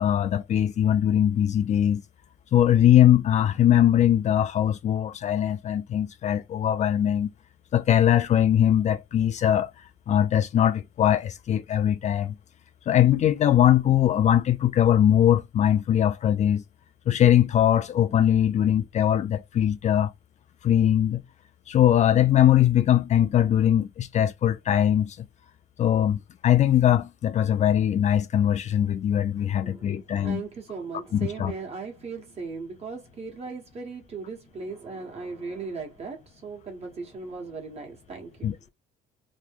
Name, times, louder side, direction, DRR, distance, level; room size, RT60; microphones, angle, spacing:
voice 1, 0.0-2.0 2.5-7.3 7.7-9.7 10.1-12.4 12.9-16.6 17.1-20.1 20.6-21.2 21.7-25.3 25.8-30.4 31.1-31.5 38.4-38.5, left 10 dB, 45° left, 0.4 m, -21 dB
voice 2, 29.4-38.7, right 4 dB, 40° right, 1.4 m, -38 dB
3.0 x 2.1 x 3.6 m
cardioid pair, 110°, 17 cm